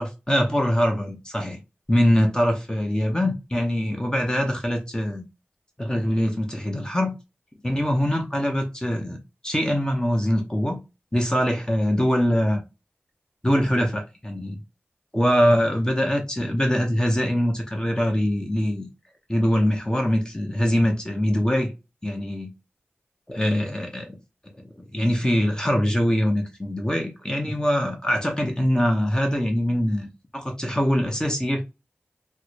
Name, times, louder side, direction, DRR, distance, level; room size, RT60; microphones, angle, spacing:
voice 1, 0.0-1.6 1.9-5.2 5.8-7.2 7.6-9.2 9.4-10.8 11.1-12.6 13.4-14.6 15.1-18.9 19.3-21.7 22.0-22.5 23.3-24.2 24.6-31.6, equal, 15° left, 0.8 m, -23 dB
3.6 x 2.1 x 3.1 m
wide cardioid pair, 50°, 4 cm